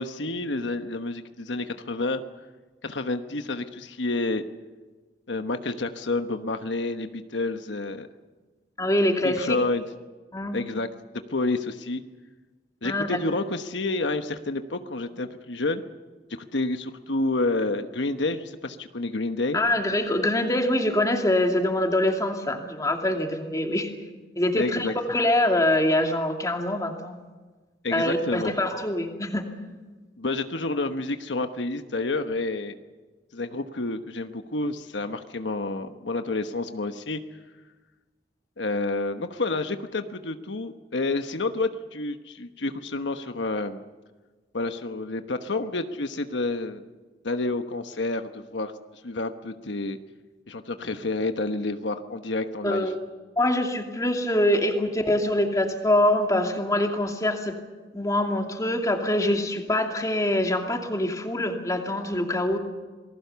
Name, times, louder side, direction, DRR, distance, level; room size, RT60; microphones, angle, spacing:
voice 1, 0.0-2.2 2.8-4.4 5.3-8.1 9.2-9.8 10.5-10.9 11.1-12.0 12.8-15.8 16.5-19.6 24.6-24.9 27.8-28.5 30.2-32.7 33.3-37.2 38.6-43.8 44.5-46.8 47.2-48.7 49.0-50.0 50.5-52.9, left 2 dB, 80° left, 8 dB, 1.1 m, -29 dB
voice 2, 8.8-9.6 10.3-10.6 12.8-13.2 19.5-23.9 24.4-27.2 27.9-29.5 52.6-53.0 53.4-57.6 57.9-62.6, left 1 dB, 20° left, 3 dB, 2.6 m, -24 dB
27.5 x 19.5 x 6.9 m, 1.3 s
head